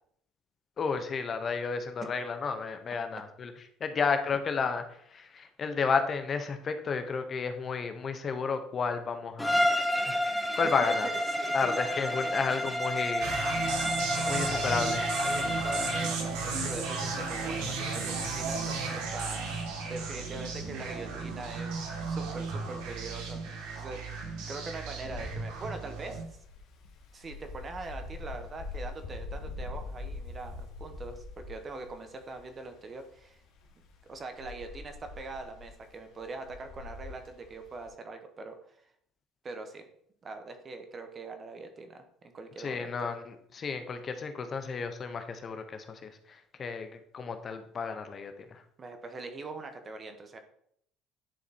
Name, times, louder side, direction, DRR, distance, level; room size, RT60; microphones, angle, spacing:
voice 1, 0.8-3.5 3.8-4.8 5.1-9.7 10.1-10.2 10.5-11.1 11.5-13.5 14.3-15.1 42.6-46.9 47.1-48.6, left 5 dB, 35° left, 8 dB, 0.8 m, -32 dB
Bowed string instrument, 9.4-16.2, left 1 dB, ahead, 0.9 m, -30 dB
voice 2, 10.8-12.5 14.1-14.6 15.2-19.5 19.9-21.7 22.0-26.2 27.1-33.4 34.0-38.5 39.4-39.8 40.2-43.1 48.8-50.4, right 3 dB, 30° right, 6 dB, 1.2 m, -42 dB
sound 1, 13.2-26.2, right 4 dB, 85° right, 2.2 m, -34 dB
Wind, 24.7-37.9, left 3 dB, 70° left, 2.3 m, -44 dB
10.0 x 4.2 x 4.2 m, 0.67 s
cardioid pair, 125°, 0 cm